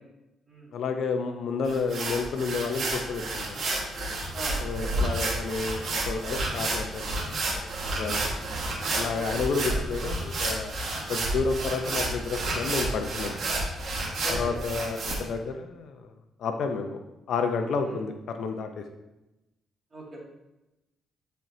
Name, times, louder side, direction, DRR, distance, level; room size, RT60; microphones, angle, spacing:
voice 1, 0.7-3.6 4.6-8.3 8.9-10.7 11.1-13.4 14.3-16.1 16.4-17.0 17.3-18.9, left 4 dB, 70° left, 6 dB, 0.7 m, -31 dB
sound 1, 1.6-15.1, right 2 dB, 60° right, 1.6 m, -30 dB
voice 2, 14.2-14.6 17.8-18.0 19.9-20.3, right 1 dB, 30° right, -3 dB, 2.3 m, -39 dB
10.0 x 4.5 x 2.8 m, 0.95 s
cardioid pair, 90°, 0 cm